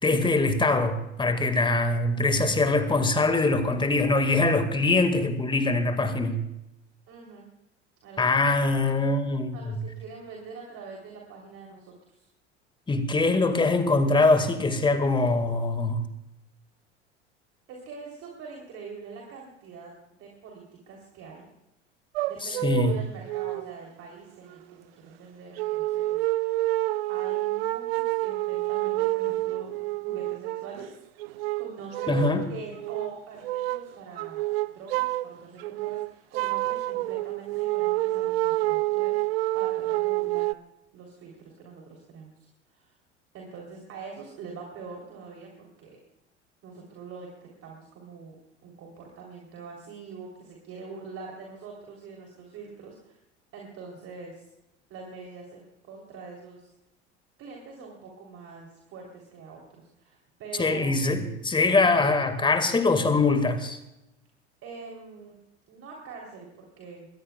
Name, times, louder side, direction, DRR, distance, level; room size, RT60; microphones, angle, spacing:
voice 1, 0.0-6.4 8.2-9.8 12.9-16.1 22.4-23.0 32.1-32.5 60.6-63.8, left 3 dB, 15° left, 1.9 m, -23 dB
voice 2, 7.1-7.5 8.0-8.2 9.5-12.3 17.7-19.9 20.2-21.5 22.3-26.2 27.1-30.9 31.3-32.1 32.5-34.4 34.7-39.2 39.5-40.6 40.9-42.9 43.3-46.0 46.6-48.4 48.6-53.2 53.5-54.4 54.9-56.7 57.4-60.9 64.6-65.3 65.7-67.1, right 4 dB, 40° right, 3.5 m, -44 dB
sound 1, 22.2-23.0 23.3-23.7 24.5-24.6 25.6-30.8 31.2-32.5 32.8-33.1 33.4-33.9 34.2-35.3 35.6-40.5, right 18 dB, 60° right, 0.5 m, -28 dB
22.0 x 20.5 x 2.4 m
figure-of-eight pair, 70°, 35 cm